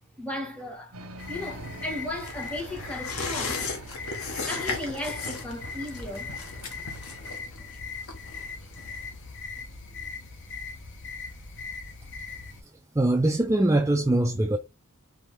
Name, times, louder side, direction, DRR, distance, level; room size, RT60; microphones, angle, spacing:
voice 1, 0.2-0.9 1.3-3.7 4.5-6.3, left 1 dB, 5° left, 1.5 m, -35 dB
sound 1, 0.9-7.4, right 2 dB, 80° right, 1.1 m, -45 dB
sound 2, 1.2-12.6, left 4 dB, 55° left, 1.2 m, -40 dB
sound 3, 2.2-9.3 9.6-9.7, left 4 dB, 70° left, 1.2 m, -36 dB
voice 2, 12.9-14.6, right 1 dB, 15° right, 0.4 m, -22 dB
4.8 x 3.0 x 3.6 m
head